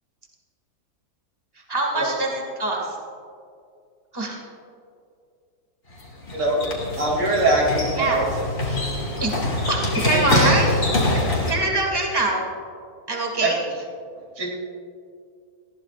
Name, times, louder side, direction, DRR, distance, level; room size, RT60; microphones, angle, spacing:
voice 1, 1.7-2.3 2.6-2.8 4.1-4.4 8.0-8.2 9.2-9.3 9.7-10.7 11.1-11.2 11.5-12.5 13.1-13.6, right 2 dB, 15° right, -1 dB, 2.0 m, -23 dB
sound 1, 5.9-11.5, left 1 dB, 45° left, 2.6 m, -24 dB
voice 2, 7.0-8.3 8.6-9.1 10.1-10.6 13.4-13.5 14.4-14.5, right 2 dB, 90° right, -3 dB, 3.5 m, -23 dB
20.0 x 16.0 x 2.5 m, 2.3 s
omnidirectional pair, 1.8 m